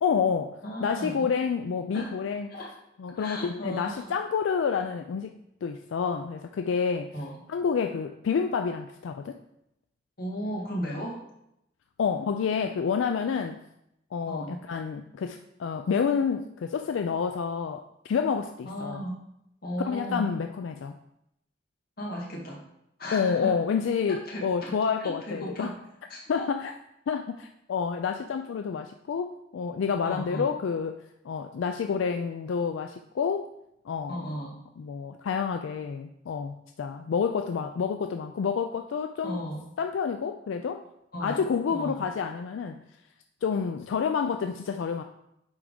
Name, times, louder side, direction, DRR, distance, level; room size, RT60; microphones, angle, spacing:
voice 1, 0.0-2.5 3.0-5.3 5.6-7.1 7.5-9.4 12.0-13.6 14.1-19.1 19.8-20.9 23.1-25.8 26.3-26.7 27.1-33.5 33.9-34.2 34.8-39.4 39.8-40.8 41.2-42.8 43.4-45.0, left 6 dB, 85° left, 6 dB, 0.3 m, -29 dB
voice 2, 0.6-1.3 1.9-2.1 2.5-2.7 3.2-4.1 7.1-7.4 10.2-11.2 14.3-14.6 18.7-19.2 19.6-20.4 22.0-22.6 23.0-23.6 24.1-24.7 25.0-25.8 26.1-26.5 30.0-30.5 34.1-34.6 39.2-39.7 41.1-42.1, equal, 55° left, -3 dB, 1.7 m, -35 dB
8.9 x 3.5 x 3.7 m, 0.81 s
head